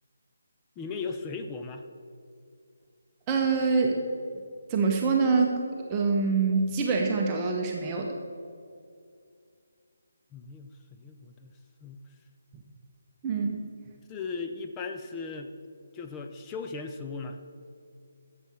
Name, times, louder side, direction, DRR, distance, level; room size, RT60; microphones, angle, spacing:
voice 1, 0.8-1.8 10.3-11.5 11.8-12.0 14.1-15.5 15.9-17.4, left 4 dB, 15° left, 5 dB, 0.5 m, -37 dB
voice 2, 3.3-4.0 4.7-8.2 12.5-12.6 13.2-13.7, right 4 dB, 20° right, 0 dB, 0.8 m, -25 dB
12.5 x 7.3 x 4.4 m, 2.3 s
figure-of-eight pair, 150°, 0 cm